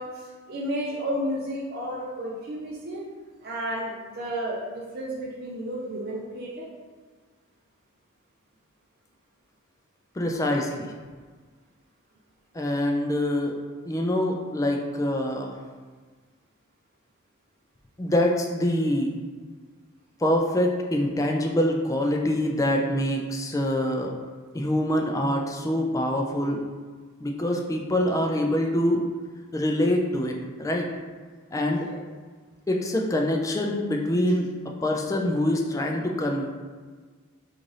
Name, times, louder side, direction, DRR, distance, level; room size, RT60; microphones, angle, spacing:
voice 1, 0.0-3.0 3.4-6.7 31.8-32.0, equal, 50° right, -5 dB, 0.5 m, -32 dB
voice 2, 10.2-10.9 12.5-13.5 13.9-15.6 18.0-19.1 20.2-24.1 24.5-26.6 27.2-29.0 29.5-30.9 31.5-31.9 32.7-34.5 34.8-36.5, left 1 dB, 15° left, 1 dB, 0.3 m, -25 dB
3.2 x 2.5 x 3.9 m, 1.5 s
head